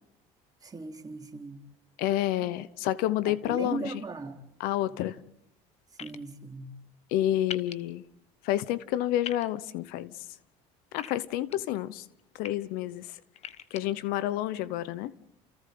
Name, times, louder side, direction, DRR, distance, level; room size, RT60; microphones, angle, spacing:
voice 1, 0.6-1.6 3.2-4.4 6.0-6.7, right 3 dB, 25° right, 3.9 m, -38 dB
voice 2, 2.0-3.9 4.6-5.2 7.1-8.0 8.4-10.3 10.9-12.1 12.4-13.2 13.7-15.1, left 13 dB, 75° left, 1.0 m, -29 dB
sound 1, 6.0-6.2 7.5-7.7 9.2-9.4 11.0-11.6 12.2-12.5 13.4-13.8, left 9 dB, 45° left, 1.2 m, -39 dB
29.5 x 28.5 x 3.9 m
supercardioid pair, 95°, 15 cm